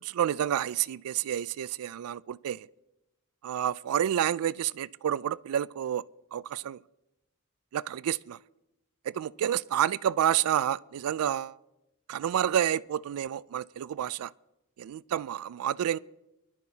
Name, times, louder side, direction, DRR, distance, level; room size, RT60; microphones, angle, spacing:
voice 1, 0.0-2.7 3.4-6.0 6.3-6.8 7.7-8.4 9.1-11.6 12.1-14.3 14.8-16.0, right 10 dB, 80° right, 0.3 m, -29 dB
22.5 x 11.5 x 2.8 m
head